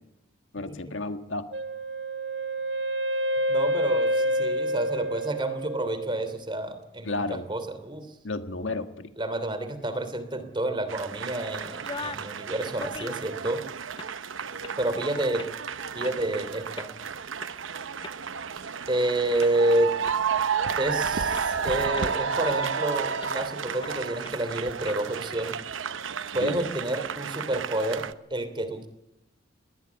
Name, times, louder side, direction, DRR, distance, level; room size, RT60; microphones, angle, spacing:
voice 1, 0.5-1.5 7.0-7.5 8.2-9.1 26.3-26.6, left 2 dB, 75° left, 8 dB, 1.7 m, -32 dB
Wind instrument woodwind instrument, 1.5-6.4, equal, 60° right, 2.1 m, -28 dB
voice 2, 3.5-7.2 7.5-8.1 9.2-13.6 14.8-15.5 15.9-16.9 18.9-19.9 20.8-25.6 26.3-28.9, right 1 dB, 25° right, 10 dB, 3.0 m, -29 dB
sound 1, 10.9-28.1, right 6 dB, 80° right, 0.9 m, -32 dB
sound 2, 11.7-12.3 12.6-13.4 13.8-14.2 14.6-14.8 15.4-15.6 16.0-16.1 16.7-16.9 17.4-17.5 18.0-19.1 19.4-19.5 20.0-20.1 20.7-20.8 21.3-21.5 22.0-22.2 22.6-22.7 23.2-23.4 23.8-23.9 24.2-24.3 24.8-25.0, left 4 dB, 25° left, 0.8 m, -40 dB
21.0 x 19.5 x 8.3 m, 0.84 s
head